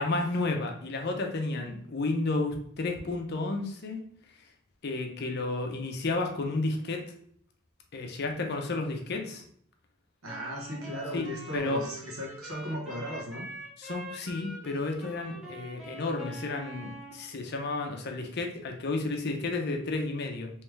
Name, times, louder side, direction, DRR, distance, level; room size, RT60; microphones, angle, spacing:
voice 1, 0.0-4.0 4.8-7.0 7.9-9.4 11.1-11.9 13.8-20.5, left 2 dB, 50° left, 3 dB, 0.6 m, -32 dB
Wind instrument woodwind instrument, 10.2-17.2, right 1 dB, ahead, 0.8 m, -44 dB
voice 2, 10.2-13.5, equal, 80° right, -2 dB, 1.1 m, -36 dB
3.4 x 3.1 x 3.2 m, 0.62 s
head